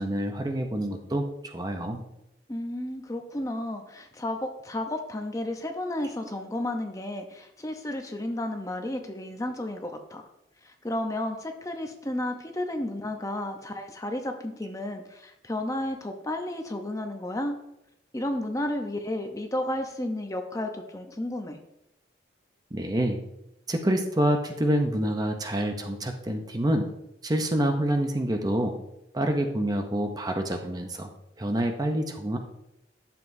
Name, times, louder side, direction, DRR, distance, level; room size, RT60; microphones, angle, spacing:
voice 1, 0.0-2.0 22.7-23.2 23.7-26.9 27.2-28.7 29.1-31.1 31.4-32.4, right 1 dB, 20° right, 5 dB, 0.6 m, -27 dB
voice 2, 2.5-10.2 10.6-17.6 18.1-21.6, left 1 dB, 20° left, 5 dB, 0.7 m, -32 dB
11.0 x 7.0 x 2.7 m, 0.86 s
head